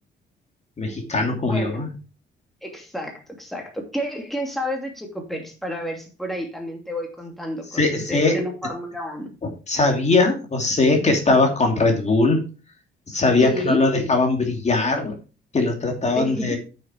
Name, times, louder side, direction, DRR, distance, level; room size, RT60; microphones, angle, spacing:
voice 1, 0.8-1.9 7.7-8.4 9.7-12.4 13.1-15.1 15.5-16.6, left 3 dB, 35° left, 3 dB, 2.8 m, -20 dB
voice 2, 1.5-1.8 2.6-9.3 13.4-13.8 16.2-16.6, equal, ahead, 1 dB, 2.6 m, -30 dB
8.3 x 6.8 x 4.6 m, 0.34 s
cardioid pair, 90°, 20 cm